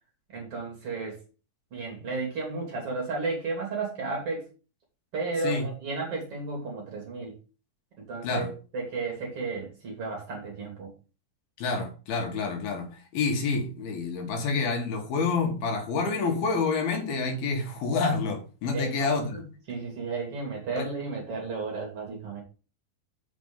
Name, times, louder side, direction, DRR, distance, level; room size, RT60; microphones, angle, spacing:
voice 1, 0.3-1.2 1.7-4.4 5.1-7.3 8.0-10.9 18.7-19.1 19.3-22.4, right 3 dB, 40° right, 3.5 m, -33 dB
voice 2, 11.6-19.4 20.8-20.9, left 4 dB, 80° left, 3.5 m, -28 dB
7.1 x 5.1 x 5.5 m
omnidirectional pair, 4.3 m